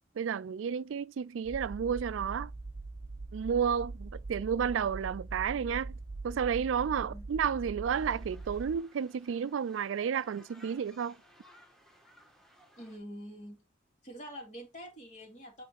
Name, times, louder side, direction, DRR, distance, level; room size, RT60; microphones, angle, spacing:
voice 1, 0.2-2.5 3.3-5.9 6.2-11.2, right 7 dB, 90° right, 0.4 m, -31 dB
sound 1, 1.4-8.8, right 3 dB, 55° right, 0.8 m, -42 dB
sound 2, 7.8-13.0, equal, ahead, 1.7 m, -59 dB
voice 2, 12.8-13.7 14.0-15.6, equal, 40° left, 2.7 m, -46 dB
8.7 x 3.3 x 4.3 m
head